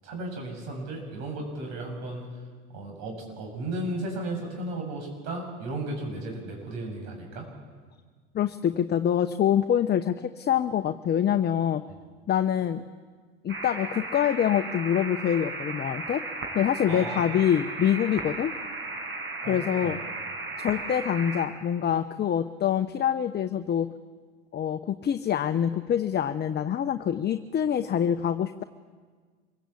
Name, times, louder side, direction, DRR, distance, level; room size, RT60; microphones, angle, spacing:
voice 1, 0.0-2.2 2.7-7.5 16.9-17.3 19.4-19.9, right 2 dB, 65° right, 2 dB, 7.5 m, -35 dB
voice 2, 8.3-11.8 12.3-12.8 13.4-16.2 16.5-18.5 19.5-20.0 20.6-23.9 24.5-28.6, left 9 dB, 35° left, 9 dB, 0.9 m, -25 dB
sound 1, 13.5-21.4, right 3 dB, 40° right, 5.3 m, -35 dB
26.0 x 16.5 x 8.4 m, 1.5 s
hypercardioid pair, 80°, 30 cm